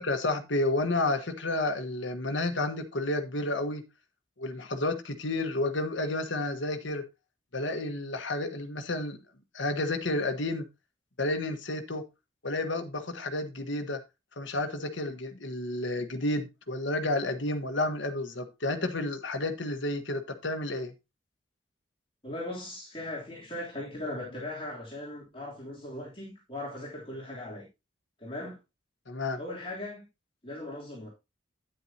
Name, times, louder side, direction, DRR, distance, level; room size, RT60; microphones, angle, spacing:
voice 1, 0.0-3.8 4.4-7.0 7.5-9.2 9.5-10.7 11.2-12.0 12.4-14.0 14.4-20.9 29.1-29.4, left 2 dB, 75° left, 1.4 m, -31 dB
voice 2, 22.2-27.7 28.2-28.6 29.4-30.1 30.4-31.1, left 1 dB, 25° left, 3.3 m, -39 dB
9.9 x 9.1 x 2.9 m
head